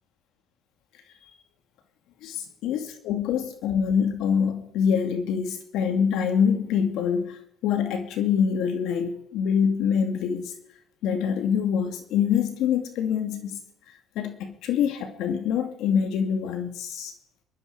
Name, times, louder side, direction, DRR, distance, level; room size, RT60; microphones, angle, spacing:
voice 1, 2.6-10.5 11.0-13.6 14.2-17.1, left 7 dB, 70° left, 6 dB, 2.5 m, -25 dB
24.5 x 11.0 x 5.0 m, 0.72 s
supercardioid pair, 85°, 0 cm